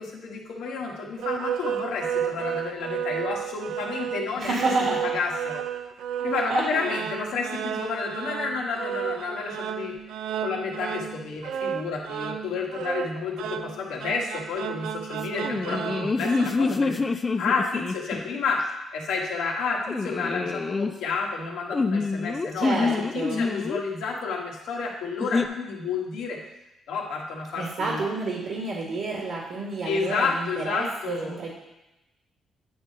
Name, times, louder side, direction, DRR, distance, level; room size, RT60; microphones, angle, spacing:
voice 1, 0.0-5.6 6.2-9.9 10.4-18.6 18.9-26.4 26.9-28.0 29.8-31.4, left 4 dB, 85° left, 0 dB, 1.4 m, -30 dB
sound 1, 1.2-16.5, right 9 dB, 85° right, 0.4 m, -32 dB
voice 2, 4.4-5.1 6.5-6.6 22.6-23.4 27.6-31.5, right 3 dB, 65° right, -2 dB, 1.7 m, -29 dB
sound 2, 15.3-18.4 19.8-20.9 21.7-23.8 25.2-25.5, left 4 dB, 25° left, 0.5 m, -26 dB
9.3 x 3.3 x 5.4 m, 0.94 s
cardioid pair, 90°, 0 cm